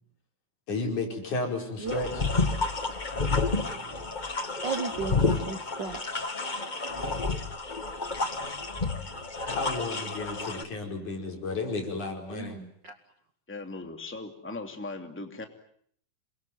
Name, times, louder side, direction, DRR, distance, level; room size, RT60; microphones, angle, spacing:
voice 1, 0.7-2.2 9.6-12.6, left 3 dB, 70° left, 3 dB, 6.6 m, -32 dB
sound 1, 1.9-10.6, left 3 dB, 25° left, 1.0 m, -30 dB
voice 2, 4.6-6.0 12.3-12.9, right 5 dB, 50° right, 9 dB, 1.4 m, -35 dB
voice 3, 13.5-15.4, left 3 dB, 5° left, 5 dB, 2.4 m, -38 dB
27.5 x 23.0 x 9.1 m, 0.64 s
omnidirectional pair, 3.6 m